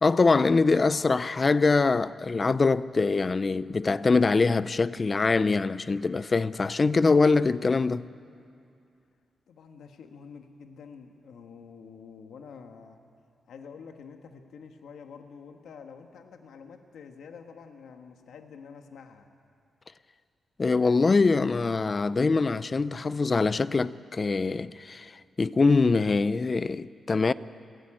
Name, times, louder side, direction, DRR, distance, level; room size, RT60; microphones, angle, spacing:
voice 1, 0.0-8.1 20.6-25.1 25.4-27.3, left 4 dB, 30° left, 0.4 m, -23 dB
voice 2, 9.5-13.0 13.5-19.3, left 6 dB, 90° left, 1.5 m, -47 dB
30.0 x 13.5 x 8.9 m
wide cardioid pair, 155°, 0 cm